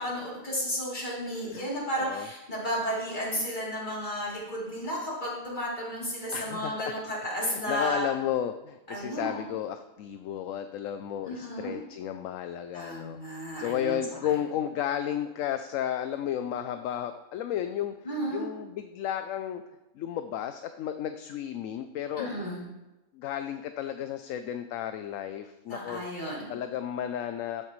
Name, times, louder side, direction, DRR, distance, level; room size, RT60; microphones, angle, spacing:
voice 1, 0.0-8.1 8.9-9.5 11.3-11.8 12.7-14.0 18.0-18.5 22.2-22.6 25.7-26.5, equal, 30° left, -6 dB, 3.3 m, -33 dB
voice 2, 1.4-2.3 6.3-6.9 7.4-17.9 18.3-19.6 19.9-22.3 23.1-26.0 26.5-27.7, left 10 dB, 70° left, 9 dB, 0.9 m, -33 dB
13.0 x 8.9 x 3.2 m, 1.0 s
omnidirectional pair, 1.5 m